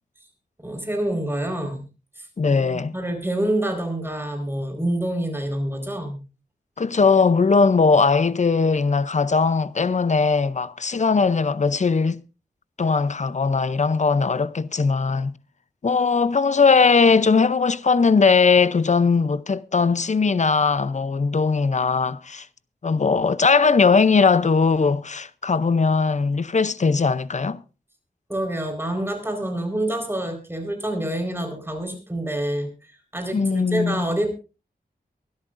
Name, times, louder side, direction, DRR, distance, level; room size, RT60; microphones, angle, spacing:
voice 1, 0.6-1.9 2.2-6.2 28.3-32.7 33.1-34.3, right 1 dB, 15° right, 4.4 m, -27 dB
voice 2, 2.4-2.9 6.8-12.2 12.8-15.4 15.8-22.5 22.8-27.6 33.3-34.1, left 4 dB, 45° left, 0.6 m, -19 dB
23.5 x 13.0 x 2.6 m
wide cardioid pair, 95°, 16 cm